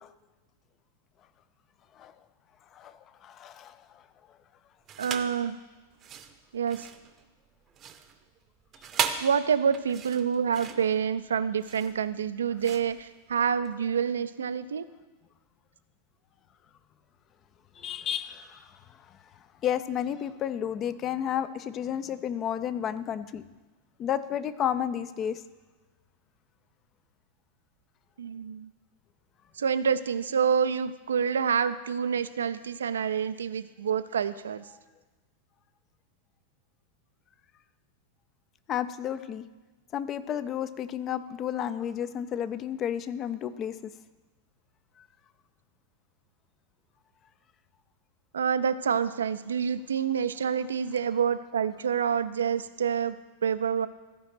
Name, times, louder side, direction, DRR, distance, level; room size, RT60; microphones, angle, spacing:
voice 1, 3.2-3.8 17.8-18.6 19.6-23.4 24.0-25.4 38.7-39.4 39.9-43.7, left 9 dB, 30° left, 13 dB, 0.5 m, -31 dB
sound 1, 4.9-5.4 5.9-13.7, right 8 dB, 30° right, 0.7 m, -36 dB
voice 2, 5.0-5.6 6.5-6.9 9.2-14.9 28.2-28.7 29.6-34.7 48.3-53.2 53.4-53.9, right 7 dB, 70° right, 13 dB, 0.4 m, -27 dB
14.0 x 5.0 x 5.8 m, 1.2 s
figure-of-eight pair, 90°, 0 cm